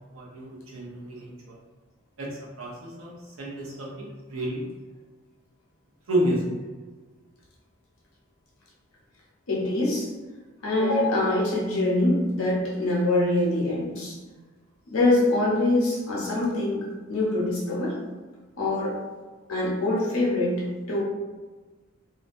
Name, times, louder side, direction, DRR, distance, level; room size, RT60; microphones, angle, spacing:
voice 1, 0.0-1.6 2.2-3.1 3.4-4.7 6.1-6.5, right 1 dB, 75° right, -4 dB, 0.7 m, -30 dB
voice 2, 9.5-10.1 10.6-14.2 14.9-18.0 18.6-19.0 19.5-21.0, left 2 dB, 85° left, -4 dB, 0.9 m, -24 dB
2.7 x 2.2 x 2.5 m, 1.3 s
head